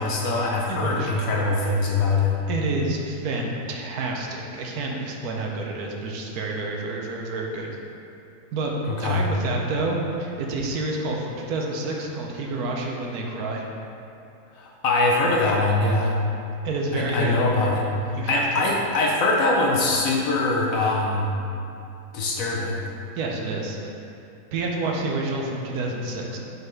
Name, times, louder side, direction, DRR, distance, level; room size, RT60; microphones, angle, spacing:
voice 1, 0.0-2.4 9.0-9.2 14.5-16.1 16.9-21.3 22.1-22.8, left 2 dB, 65° left, -2 dB, 0.9 m, -23 dB
voice 2, 0.7-1.3 2.5-7.8 8.5-8.7 9.0-13.6 16.6-17.4 18.1-18.7 23.2-23.9 24.5-26.4, right 2 dB, 70° right, 0 dB, 1.1 m, -29 dB
5.3 x 4.0 x 4.5 m, 2.7 s
omnidirectional pair, 1.7 m